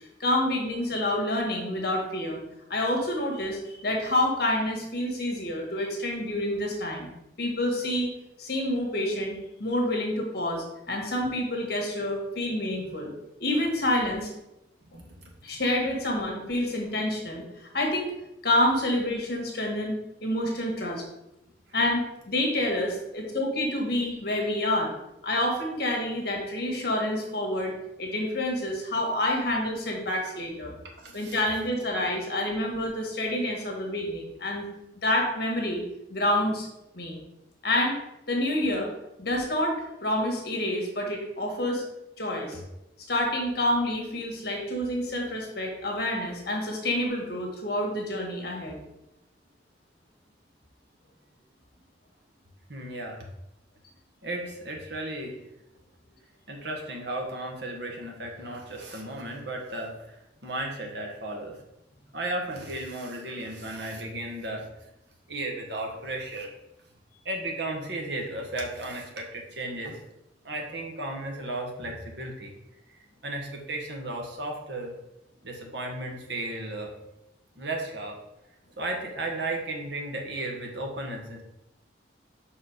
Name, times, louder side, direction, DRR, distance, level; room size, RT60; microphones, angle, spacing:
voice 1, 0.2-2.4 2.7-7.1 7.4-8.1 8.4-13.1 13.4-14.3 15.4-18.1 18.4-21.0 21.7-24.9 25.2-30.8 31.1-34.7 35.0-35.8 36.1-36.7 36.9-37.2 37.6-38.0 38.3-38.9 39.2-41.8 42.2-42.6 43.1-48.8, left 1 dB, 60° left, 0 dB, 1.6 m, -28 dB
voice 2, 14.8-15.3 30.8-31.4 42.5-42.6 52.7-53.3 54.2-55.5 56.5-61.6 62.1-64.7 65.3-66.5 67.2-70.0 70.4-72.5 72.9-74.9 75.4-76.9 77.6-78.2 78.8-81.4, right 2 dB, 70° right, 1 dB, 1.4 m, -35 dB
5.4 x 4.7 x 5.0 m, 0.88 s
head